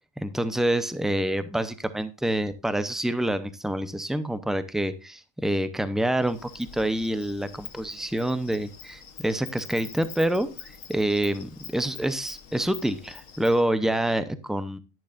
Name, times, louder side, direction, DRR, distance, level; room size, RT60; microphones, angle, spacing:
voice 1, 0.2-14.8, right 1 dB, ahead, 12 dB, 0.3 m, -27 dB
Insect, 6.2-13.6, left 6 dB, 75° left, 1.5 m, -45 dB
12.0 x 10.5 x 2.5 m, 0.30 s
omnidirectional pair, 1.4 m